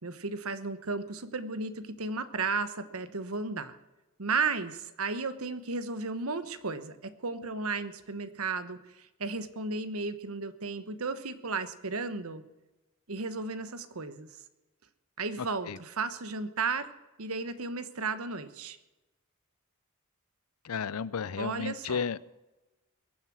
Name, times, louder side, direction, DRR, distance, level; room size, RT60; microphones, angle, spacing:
voice 1, 0.0-3.8 4.2-12.4 13.1-14.3 15.2-16.9 17.2-18.8 21.4-22.2, right 4 dB, 75° right, 12 dB, 1.2 m, -34 dB
voice 2, 20.6-22.2, left 6 dB, 80° left, 19 dB, 0.5 m, -33 dB
22.0 x 7.4 x 6.1 m, 1.1 s
head